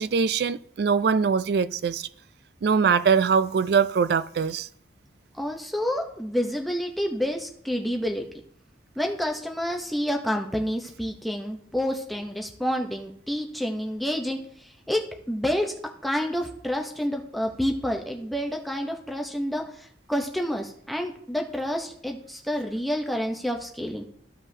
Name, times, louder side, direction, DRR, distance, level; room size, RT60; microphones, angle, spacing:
voice 1, 0.0-2.1 2.6-4.7, right 6 dB, 55° right, 0.3 m, -22 dB
voice 2, 5.4-8.2 9.0-14.4 14.9-15.0 15.3-15.7 16.0-24.0, equal, ahead, 0.7 m, -28 dB
13.5 x 5.3 x 2.7 m
head